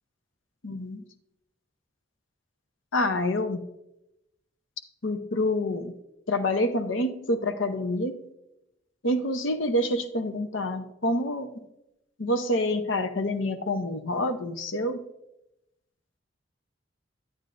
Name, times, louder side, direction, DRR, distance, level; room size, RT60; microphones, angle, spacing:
voice 1, 0.6-1.0 2.9-3.6 5.0-5.9 6.3-8.2 9.0-11.5 12.2-15.0, left 1 dB, 80° left, 9 dB, 0.8 m, -27 dB
11.0 x 8.8 x 2.5 m, 0.85 s
head